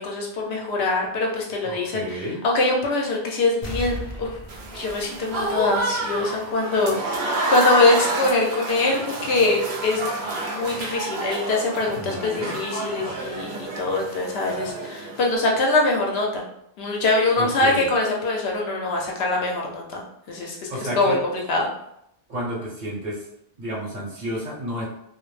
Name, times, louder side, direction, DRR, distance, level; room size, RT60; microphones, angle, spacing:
voice 1, 0.0-4.3 4.7-16.4 16.8-20.7 21.0-21.2 21.5-21.7, left 2 dB, 75° left, -1 dB, 0.8 m, -23 dB
voice 2, 1.6-2.4 11.9-12.6 17.4-17.9 20.7-21.2 22.3-23.3 23.6-24.8, equal, 45° right, -7 dB, 0.9 m, -31 dB
sound 1, 3.6-6.2 6.6-6.7, left 1 dB, 40° left, 0.4 m, -36 dB
Applause / Crowd, 4.5-15.4, right 2 dB, 75° right, 0.8 m, -29 dB
2.3 x 2.0 x 3.1 m, 0.78 s
omnidirectional pair, 1.1 m